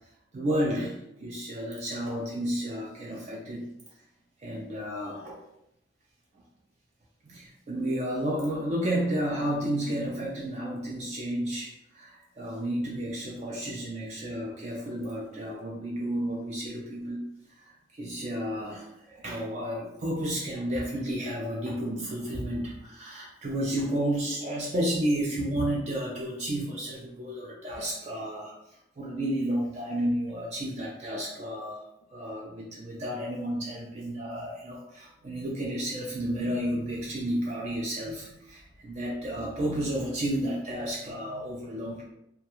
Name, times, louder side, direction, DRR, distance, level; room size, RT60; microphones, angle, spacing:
voice 1, 0.3-3.7 4.4-5.4 7.2-17.2 17.6-42.0, right 1 dB, 40° right, -2 dB, 0.4 m, -32 dB
2.2 x 2.2 x 2.9 m, 0.82 s
head